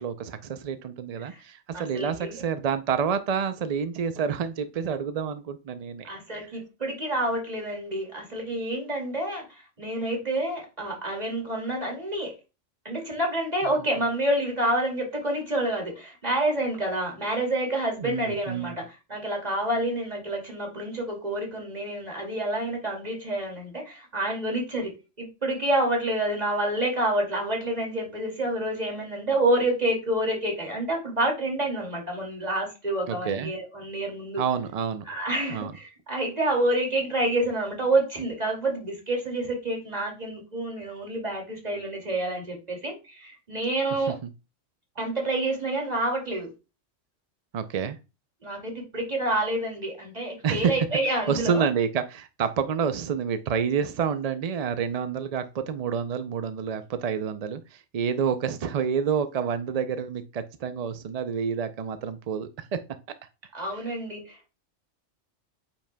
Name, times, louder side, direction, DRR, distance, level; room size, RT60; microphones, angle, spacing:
voice 1, 0.0-6.1 18.0-18.8 33.1-33.5 34.4-35.0 35.5-35.7 47.5-48.0 50.4-50.8 51.3-62.8, right 7 dB, 60° right, 10 dB, 0.4 m, -28 dB
voice 2, 1.7-2.4 6.0-12.3 12.8-24.9 25.2-34.4 35.1-44.2 45.0-46.5 48.4-51.6 63.5-64.5, right 1 dB, 30° right, 0 dB, 2.4 m, -28 dB
8.7 x 5.8 x 2.2 m, 0.29 s
omnidirectional pair, 1.3 m